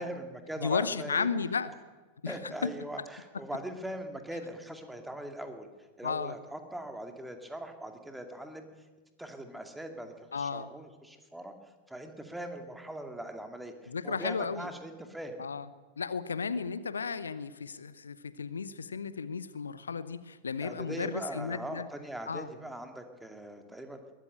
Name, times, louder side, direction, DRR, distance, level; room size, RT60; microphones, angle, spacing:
voice 1, 0.0-1.3 2.3-5.7 6.0-8.7 9.2-15.4 20.6-24.0, right 1 dB, 5° right, 6 dB, 2.4 m, -41 dB
voice 2, 0.6-1.7 2.2-2.7 6.0-6.3 10.3-10.7 13.9-14.7 15.4-15.7 16.0-21.8 22.3-22.5, left 5 dB, 75° left, 16 dB, 0.8 m, -34 dB
21.0 x 14.0 x 8.9 m, 1.3 s
figure-of-eight pair, 90°, 0 cm